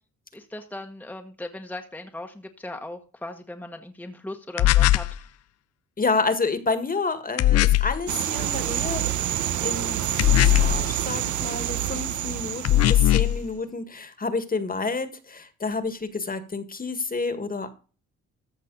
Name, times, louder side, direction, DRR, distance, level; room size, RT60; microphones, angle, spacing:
voice 1, 0.3-5.3, left 1 dB, 5° left, 4 dB, 1.3 m, -38 dB
sound 1, 4.6-5.2 7.4-8.0 10.2-10.9 12.6-13.4, left 14 dB, 55° left, 0.5 m, -19 dB
voice 2, 6.0-9.1 9.6-17.7, left 4 dB, 30° left, 11 dB, 1.8 m, -29 dB
sound 2, 8.1-13.3, right 12 dB, 75° right, 1.1 m, -28 dB
14.0 x 6.1 x 4.0 m, 0.36 s
cardioid pair, 90°, 30 cm